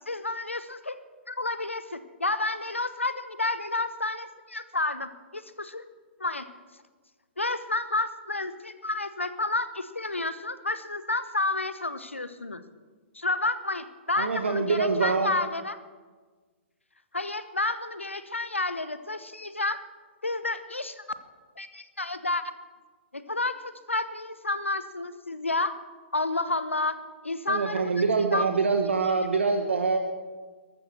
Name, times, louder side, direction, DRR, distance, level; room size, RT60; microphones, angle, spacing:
voice 1, 0.1-1.0 1.3-5.8 6.2-6.5 7.4-12.6 13.1-15.8 17.1-19.8 20.2-21.0 21.6-22.4 23.1-25.8 26.1-27.0 27.2-27.9 28.3-28.4, left 2 dB, 90° left, 12 dB, 1.0 m, -30 dB
voice 2, 14.2-15.3 27.5-30.0, right 4 dB, 75° right, 5 dB, 1.2 m, -25 dB
13.5 x 12.5 x 6.7 m, 1.4 s
figure-of-eight pair, 115°, 7 cm